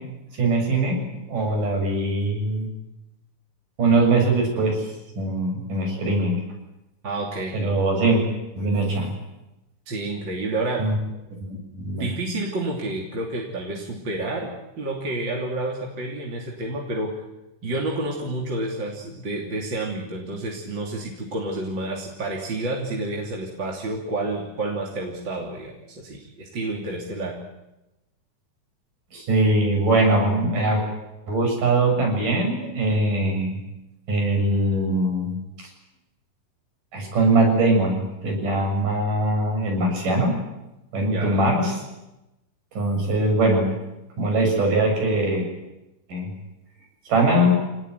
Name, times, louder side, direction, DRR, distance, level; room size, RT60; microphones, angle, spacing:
voice 1, 0.3-1.0 1.3-2.7 3.8-4.9 5.2-6.4 7.5-8.2 8.6-9.1 10.8-11.0 11.5-12.1 29.1-30.8 31.3-33.6 34.1-35.7 36.9-40.4 40.9-41.8 42.8-43.7 44.2-45.5 46.1-46.3 47.1-47.5, right 2 dB, 80° right, 1 dB, 8.6 m, -21 dB
voice 2, 7.0-7.6 9.9-10.8 11.9-14.5 14.8-17.1 17.6-27.4 41.0-41.5, right 2 dB, 35° right, -1 dB, 3.6 m, -29 dB
27.5 x 19.0 x 9.7 m, 0.96 s
omnidirectional pair, 3.7 m